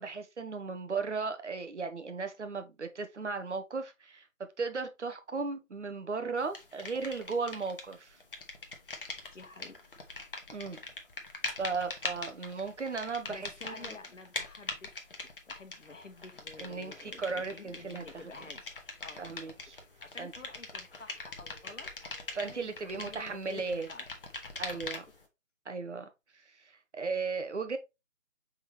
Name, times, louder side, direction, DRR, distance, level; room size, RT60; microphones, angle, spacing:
voice 1, 0.0-8.2 10.5-10.8 11.6-13.9 16.6-18.0 19.2-19.8 20.2-20.3 22.3-23.9 24.6-25.0 25.7-26.1 26.9-27.8, right 4 dB, 60° right, 0.8 m, -36 dB
sound 1, 6.5-7.9 8.2-25.2, left 3 dB, 45° left, 0.8 m, -42 dB
voice 2, 9.3-9.8 13.3-18.7 19.0-19.5 20.0-21.9 22.4-24.0 24.7-24.8, left 3 dB, 65° left, 1.1 m, -50 dB
4.4 x 3.6 x 3.0 m
figure-of-eight pair, 150°, 40 cm